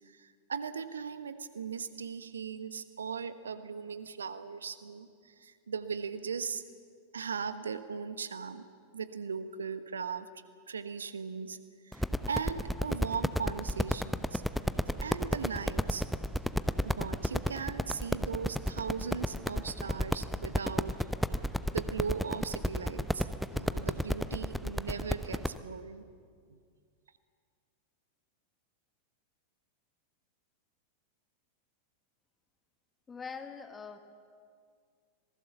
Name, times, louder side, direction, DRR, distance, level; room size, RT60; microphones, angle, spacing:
voice 1, 0.1-6.6 7.1-8.6 8.9-10.3 10.7-11.6 11.8-14.4 15.0-16.1 16.8-20.9 21.7-26.1 26.5-26.6, right 6 dB, 70° right, 12 dB, 1.2 m, -38 dB
sound 1, 11.9-25.6, equal, ahead, 0.7 m, -32 dB
voice 2, 33.1-34.0, left 5 dB, 15° left, 8 dB, 1.6 m, -43 dB
26.5 x 19.0 x 7.1 m, 2.1 s
figure-of-eight pair, 90°, 0 cm